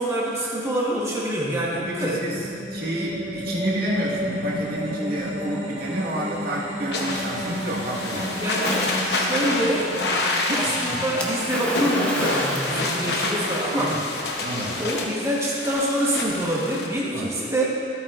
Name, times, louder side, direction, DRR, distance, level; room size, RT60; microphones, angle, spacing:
voice 1, 0.0-2.2 8.4-9.9 10.5-14.0 14.8-17.7, right 1 dB, 15° right, -4 dB, 1.2 m, -26 dB
sound 1, 1.7-14.8, equal, 40° right, 1.0 m, -33 dB
voice 2, 1.7-8.4 10.5-11.1 13.7-14.1 14.4-14.8 17.1-17.4, right 1 dB, 55° right, -6 dB, 1.6 m, -30 dB
sound 2, 6.9-16.9, left 2 dB, 65° left, 0.9 m, -28 dB
Splash splatter, 8.6-9.5 11.2-13.6, equal, 10° left, 0.8 m, -32 dB
13.0 x 8.7 x 2.5 m, 2.6 s
head